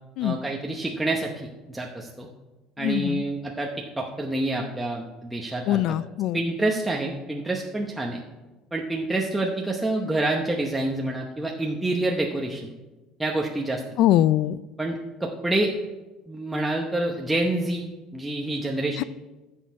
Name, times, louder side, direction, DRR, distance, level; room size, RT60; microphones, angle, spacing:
voice 1, 0.2-1.3 1.7-2.3 2.8-3.7 4.0-5.8 6.3-8.2 8.7-12.7 13.2-13.8 14.8-15.7 16.3-17.9 18.1-19.0, right 2 dB, 5° right, -1 dB, 0.8 m, -27 dB
voice 2, 2.8-3.2 5.7-6.4 14.0-14.6 19.0-19.1, left 13 dB, 60° left, 18 dB, 0.3 m, -22 dB
14.5 x 6.3 x 4.7 m, 1.1 s
cardioid pair, 145°, 0 cm